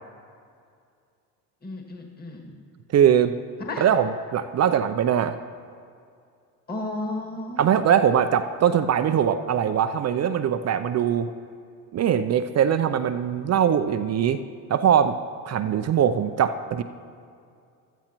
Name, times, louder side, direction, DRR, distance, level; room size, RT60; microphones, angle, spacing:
voice 1, 1.6-2.6 3.6-3.8 6.7-7.7, left 2 dB, 20° left, 1 dB, 1.8 m, -33 dB
voice 2, 2.9-3.3 3.8-5.3 7.6-11.3 11.9-14.4 14.7-15.2 15.4-16.8, right 8 dB, 35° right, 9 dB, 0.5 m, -21 dB
15.0 x 13.0 x 3.0 m, 2.3 s
supercardioid pair, 80°, 47 cm